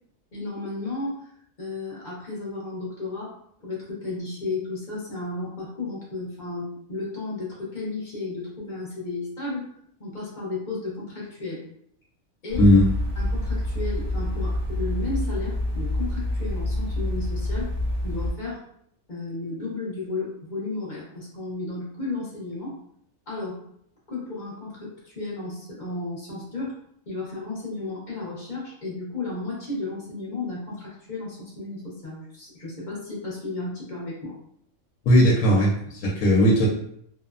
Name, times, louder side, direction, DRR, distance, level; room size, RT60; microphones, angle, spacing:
voice 1, 0.3-1.3 1.6-3.3 3.6-9.7 10.0-11.6 12.4-12.8 13.2-17.7 18.0-18.6 19.1-22.8 23.3-23.6 24.1-26.8 27.1-34.4, left 3 dB, 40° left, -6 dB, 0.8 m, -33 dB
sound 1, 12.5-18.3, left 1 dB, 60° right, 0.9 m, -27 dB
voice 2, 35.1-36.7, equal, 80° left, -3 dB, 1.0 m, -17 dB
2.8 x 2.1 x 2.4 m, 0.71 s
omnidirectional pair, 1.5 m